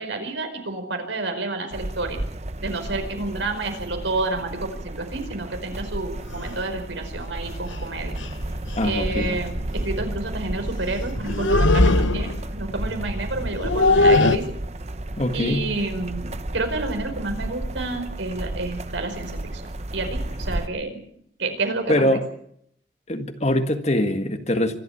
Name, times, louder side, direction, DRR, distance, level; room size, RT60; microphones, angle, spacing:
voice 1, 0.0-2.2 2.6-8.1 8.8-14.6 15.3-19.6 19.9-21.0 21.4-22.2, right 2 dB, 80° right, 4.9 m, -29 dB
sound 1, 1.7-20.7, right 1 dB, 35° right, 0.9 m, -32 dB
sound 2, 6.3-6.5 7.7-7.8 8.2-8.4 8.7-8.9 11.2-12.5 13.5-14.4, left 2 dB, 85° left, 1.0 m, -19 dB
voice 2, 8.7-9.4 15.2-15.7 21.9-22.3 23.1-24.8, left 1 dB, 35° left, 1.7 m, -23 dB
25.0 x 12.0 x 8.5 m
head